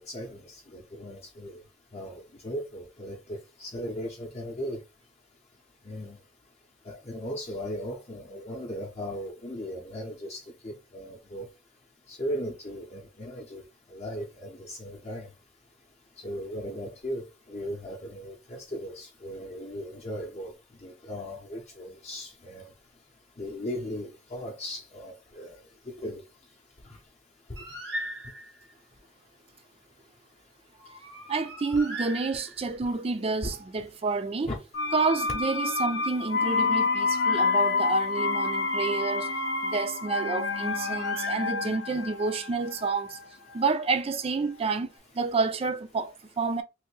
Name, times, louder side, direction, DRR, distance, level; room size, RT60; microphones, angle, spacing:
voice 1, 0.0-1.6 1.9-4.8 5.8-6.2 6.8-11.5 12.1-13.6 13.9-15.3 16.2-20.5 20.8-22.7 23.4-25.6 26.0-26.2 33.4-33.5 34.5-34.6, equal, 35° left, 0.7 m, -37 dB
Bird, 27.6-28.7 30.8-32.9 36.3-38.2 40.1-42.0, right 1 dB, 80° right, 1.3 m, -41 dB
voice 2, 31.3-34.5 34.9-39.3 39.6-43.2 43.5-46.6, right 4 dB, 30° right, 0.4 m, -29 dB
sound 1, 34.7-44.5 44.8-44.9, left 4 dB, 70° left, 0.6 m, -29 dB
3.2 x 2.6 x 3.1 m
head